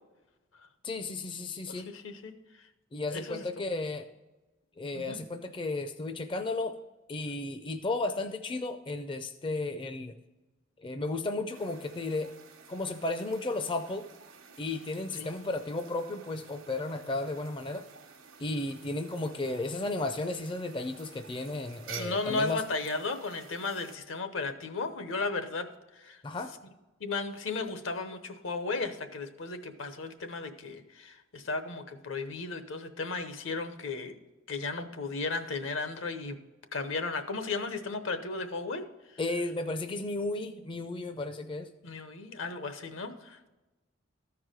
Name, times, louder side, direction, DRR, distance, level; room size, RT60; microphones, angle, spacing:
voice 1, 0.8-1.9 2.9-4.1 4.8-6.7 7.1-10.2 10.8-12.3 12.7-14.1 14.6-17.8 18.4-22.6 26.2-26.5 39.2-41.7, left 2 dB, 25° left, 8 dB, 0.4 m, -34 dB
voice 2, 1.7-2.3 3.1-3.5 4.9-5.2 15.1-15.3 22.0-25.7 25.9-26.2 27.0-34.1 34.5-36.4 36.7-38.8 41.8-43.5, left 3 dB, 75° left, 9 dB, 0.9 m, -35 dB
sound 1, 11.5-24.0, right 6 dB, 80° right, 1.1 m, -51 dB
13.5 x 4.8 x 5.0 m, 1.1 s
head